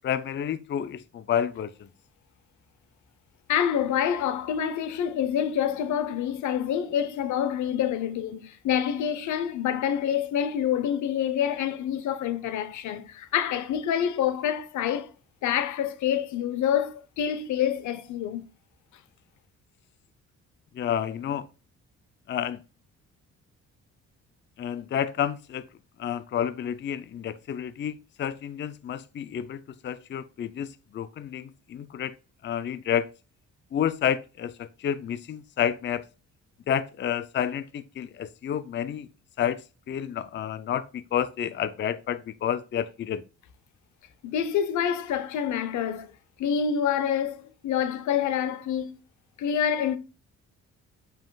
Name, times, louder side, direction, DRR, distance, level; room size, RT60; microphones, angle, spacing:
voice 1, 0.0-1.7 20.8-21.5 22.3-22.6 24.6-25.6 26.0-30.7 30.9-32.1 32.4-33.1 33.7-36.1 36.7-39.1 39.4-43.2, left 9 dB, 40° left, 0.5 m, -30 dB
voice 2, 3.5-15.1 15.4-18.5 44.2-46.1 46.4-48.9 49.4-50.0, left 9 dB, 75° left, 0.8 m, -27 dB
7.5 x 5.7 x 2.3 m
cardioid pair, 90°, 30 cm